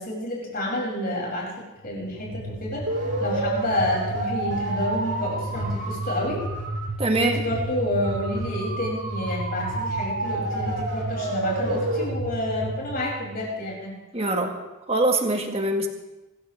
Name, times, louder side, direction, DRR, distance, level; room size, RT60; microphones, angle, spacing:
voice 1, 0.0-1.5 1.8-2.9 3.2-6.4 7.1-13.9, left 1 dB, 45° left, -4 dB, 7.6 m, -29 dB
sound 1, 1.8-13.7, right 2 dB, 60° right, 6.2 m, -29 dB
voice 2, 7.0-7.4 14.1-14.6 14.9-15.9, right 2 dB, 30° right, 3 dB, 1.8 m, -23 dB
26.0 x 15.0 x 3.7 m, 1.1 s
head